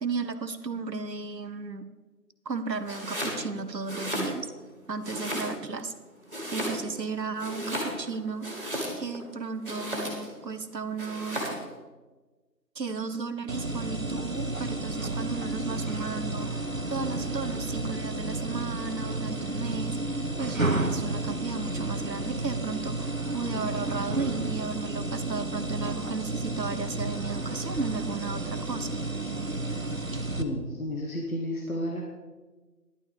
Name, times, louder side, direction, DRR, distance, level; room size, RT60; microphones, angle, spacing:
voice 1, 0.0-1.9 2.4-4.5 4.9-5.9 6.5-8.5 9.0-11.5 12.7-16.5 16.9-20.0 20.4-28.9, right 4 dB, 80° right, 10 dB, 1.1 m, -34 dB
Domestic sounds home sounds, 2.8-3.4 3.8-4.7 5.0-5.8 6.3-7.0 7.4-9.2 9.6-10.4 11.0-11.6, equal, 30° right, 2.4 m, -34 dB
sound 1, 13.5-30.4, right 2 dB, 55° right, 1.0 m, -32 dB
voice 2, 30.4-32.0, left 1 dB, 55° left, 0 dB, 1.6 m, -32 dB
11.0 x 9.3 x 5.2 m, 1.3 s
figure-of-eight pair, 175°, 49 cm